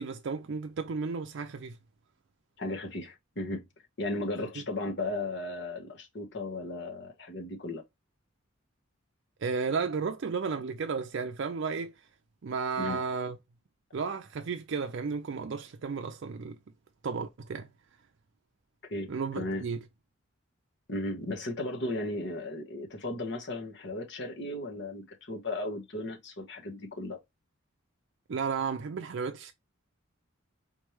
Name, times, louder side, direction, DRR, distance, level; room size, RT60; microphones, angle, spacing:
voice 1, 0.0-1.8 9.4-11.9 12.4-13.4 13.9-16.6 17.0-17.7 19.1-19.8 28.3-29.5, right 5 dB, 60° right, 0.4 m, -33 dB
voice 2, 2.6-3.6 4.0-7.8 12.8-13.0 18.9-19.6 20.9-27.2, left 2 dB, 55° left, 1.3 m, -35 dB
4.2 x 3.2 x 3.1 m
head